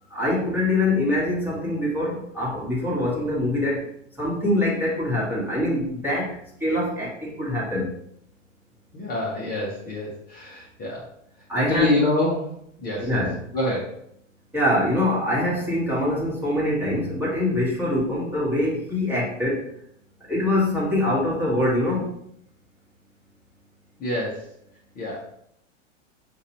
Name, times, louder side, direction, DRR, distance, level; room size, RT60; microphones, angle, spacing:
voice 1, 0.1-3.9 4.2-7.9 11.5-12.0 13.0-13.3 14.5-19.6 20.3-22.1, left 1 dB, 5° right, -6 dB, 1.4 m, -24 dB
voice 2, 8.9-11.1 11.5-12.5 12.8-13.2 13.5-14.0 24.0-24.5 25.0-25.2, left 2 dB, 25° left, -5 dB, 1.0 m, -26 dB
5.7 x 2.6 x 2.9 m, 0.72 s
hypercardioid pair, 115°, 38 cm